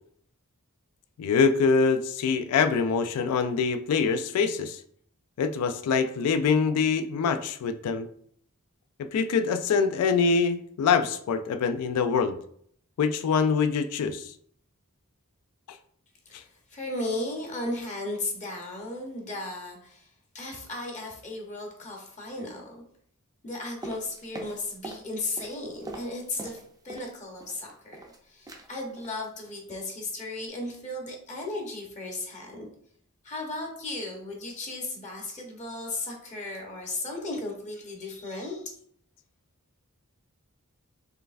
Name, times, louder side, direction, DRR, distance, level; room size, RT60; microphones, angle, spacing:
voice 1, 1.2-4.8 5.4-8.1 9.0-12.4 13.0-14.3 15.7-15.8, left 5 dB, 85° left, 9 dB, 0.3 m, -24 dB
voice 2, 16.7-20.1 20.3-22.8 23.4-26.6 26.8-32.7 33.2-38.7, left 2 dB, 35° left, 0 dB, 0.9 m, -35 dB
sound 1, 23.8-25.1 25.3-27.1 27.4-28.2 28.5-28.7 29.0-29.2 29.5-29.8 30.0-30.1, right 2 dB, 15° right, 0.5 m, -42 dB
4.5 x 3.2 x 2.4 m, 0.64 s
head